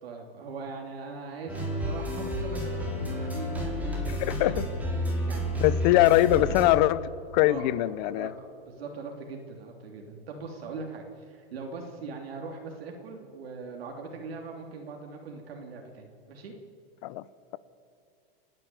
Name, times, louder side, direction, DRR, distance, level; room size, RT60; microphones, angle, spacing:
voice 1, 0.0-4.6 5.1-5.9 7.4-16.5, right 4 dB, 90° right, 1 dB, 3.1 m, -41 dB
sound 1, 1.5-6.7, equal, 5° right, 4.3 m, -31 dB
voice 2, 4.1-4.7 5.6-7.1 7.3-8.3 17.0-17.2, left 15 dB, 50° left, 17 dB, 0.9 m, -22 dB
29.0 x 10.5 x 9.2 m, 2.4 s
supercardioid pair, 145°, 29 cm